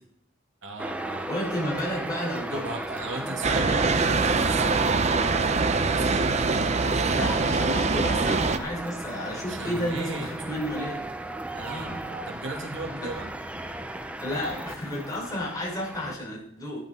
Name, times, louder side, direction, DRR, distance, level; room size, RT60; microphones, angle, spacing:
voice 1, 0.6-1.3 2.5-6.4 7.0-7.4 9.5-10.5 11.5-13.3, right 2 dB, 85° right, 0 dB, 2.8 m, -37 dB
sound 1, 0.8-16.1, right 1 dB, 5° right, 0.8 m, -36 dB
voice 2, 1.3-2.6 3.2-4.2 7.1-11.0 11.6-12.3 13.0-13.1 14.2-16.8, equal, 20° left, -3 dB, 5.8 m, -32 dB
sound 2, 3.4-8.6, right 4 dB, 35° right, 0.7 m, -23 dB
14.5 x 10.5 x 4.4 m, 0.69 s
head